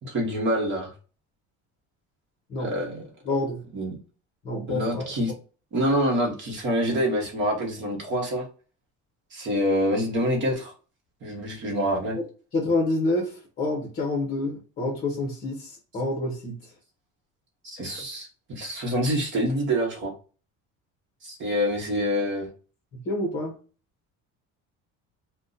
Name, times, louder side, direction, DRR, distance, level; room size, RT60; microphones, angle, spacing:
voice 1, 0.0-0.9 2.6-3.0 3.7-4.0 4.7-5.3 5.7-8.5 9.3-10.7 11.2-12.2 17.6-20.1 21.2-22.5, equal, 40° right, 1.0 m, -26 dB
voice 2, 3.3-3.6 4.4-5.1 12.1-12.2 12.5-16.5 23.1-23.5, left 2 dB, 30° left, 0.7 m, -27 dB
2.6 x 2.1 x 3.8 m
cardioid pair, 175°, 31 cm